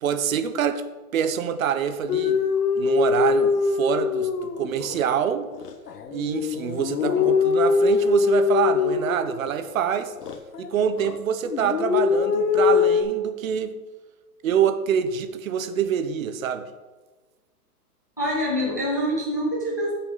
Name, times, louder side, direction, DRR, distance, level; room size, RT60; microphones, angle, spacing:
voice 1, 0.0-0.8 1.1-2.4 2.7-5.5 6.1-10.1 10.6-13.8 14.4-16.7, right 8 dB, 60° right, 0.9 m, -26 dB
sound 1, 2.1-5.0 5.5-9.8 10.2-11.2 11.5-13.0, left 5 dB, 90° left, 1.1 m, -22 dB
voice 2, 18.2-19.9, equal, 15° left, 0.3 m, -25 dB
13.5 x 5.9 x 3.9 m
hypercardioid pair, 155°, 45 cm